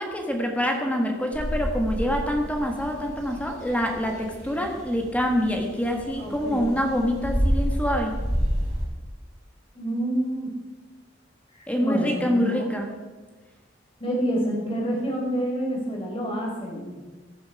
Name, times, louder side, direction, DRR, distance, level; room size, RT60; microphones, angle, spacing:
voice 1, 0.0-8.2 11.7-12.9, equal, 5° left, 2 dB, 1.6 m, -26 dB
sound 1, 1.3-8.8, equal, 40° right, 6.1 m, -30 dB
voice 2, 6.2-6.8 9.7-10.5 11.8-12.6 14.0-17.0, right 1 dB, 30° left, -2 dB, 4.7 m, -28 dB
16.0 x 12.0 x 4.9 m, 1.3 s
head